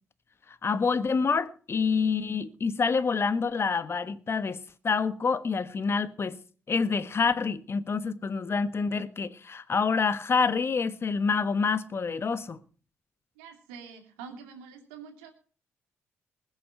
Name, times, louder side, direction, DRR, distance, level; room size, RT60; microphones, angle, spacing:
voice 1, 0.6-6.4 6.7-12.6, left 5 dB, 45° left, 1.3 m, -27 dB
voice 2, 13.4-15.3, right 6 dB, 90° right, 2.5 m, -45 dB
20.5 x 7.1 x 5.6 m
hypercardioid pair, 45°, 6 cm